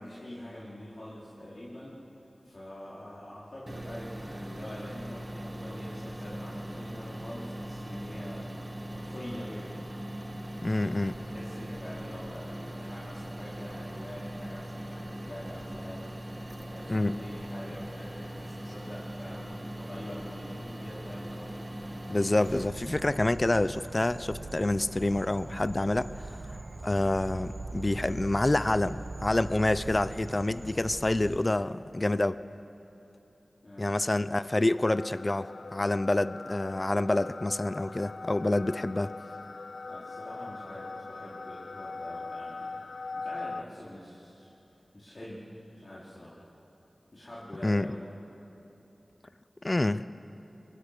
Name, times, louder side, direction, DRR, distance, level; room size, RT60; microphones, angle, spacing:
voice 1, 0.0-2.0 2.4-8.5 8.9-9.7 11.2-16.1 16.4-21.5 33.6-34.2 39.8-42.8 43.1-44.5 44.9-46.3 47.1-48.1, left 1 dB, 50° left, -8 dB, 4.0 m, -44 dB
sound 1, 3.7-22.7, right 1 dB, 35° right, 1.7 m, -40 dB
voice 2, 10.6-11.2 16.9-17.2 22.1-26.1 26.8-32.4 33.8-39.1 47.6-47.9 49.6-50.1, left 2 dB, 35° left, 15 dB, 0.5 m, -27 dB
sound 2, 22.4-31.4, right 2 dB, 60° right, 1.4 m, -41 dB
sound 3, 34.8-43.6, left 3 dB, 80° left, 0.5 m, -41 dB
23.5 x 22.5 x 6.7 m, 3.0 s
wide cardioid pair, 65°, 0 cm